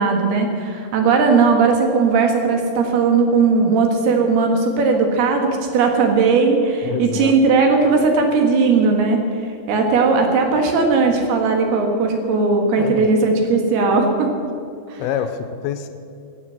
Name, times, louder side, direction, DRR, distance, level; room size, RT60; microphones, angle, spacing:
voice 1, 0.0-14.3 14.9-15.0, right 4 dB, 75° right, 3 dB, 3.7 m, -17 dB
voice 2, 6.8-7.3 12.8-13.1 15.0-15.9, left 9 dB, 80° left, 8 dB, 2.5 m, -26 dB
17.5 x 9.3 x 7.8 m, 2.5 s
omnidirectional pair, 4.7 m